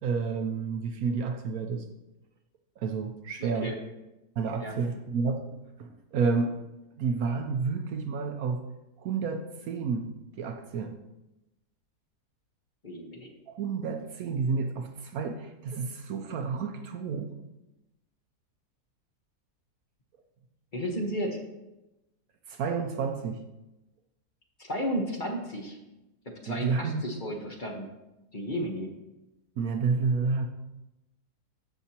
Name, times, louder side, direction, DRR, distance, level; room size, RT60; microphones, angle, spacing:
voice 1, 0.0-1.9 2.8-3.7 4.4-5.5 5.8-6.5 7.0-8.6 9.0-10.1 10.4-10.9 13.5-17.3 22.5-23.4 26.5-27.0 29.6-30.5, right 5 dB, 70° right, 5 dB, 1.0 m, -30 dB
voice 2, 3.4-3.8 4.6-4.7 12.8-13.3 20.7-21.4 24.6-25.8 26.2-27.9 28.3-28.9, equal, 35° left, 1 dB, 1.1 m, -33 dB
14.0 x 5.6 x 2.9 m, 0.98 s
omnidirectional pair, 1.7 m